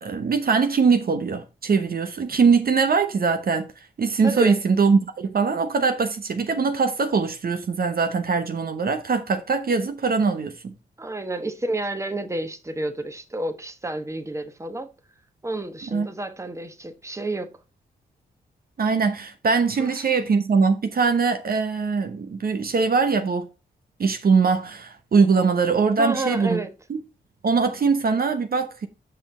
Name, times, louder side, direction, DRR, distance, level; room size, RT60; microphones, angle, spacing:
voice 1, 0.0-3.7 4.0-10.7 15.9-16.1 18.8-23.5 24.0-26.6 26.9-27.0 27.4-28.9, right 5 dB, 55° right, 0.9 m, -22 dB
voice 2, 4.2-4.6 11.0-14.9 15.4-17.5 19.8-20.1 26.0-26.7, right 2 dB, 15° right, 1.1 m, -30 dB
5.8 x 5.5 x 4.3 m
supercardioid pair, 50°, 19 cm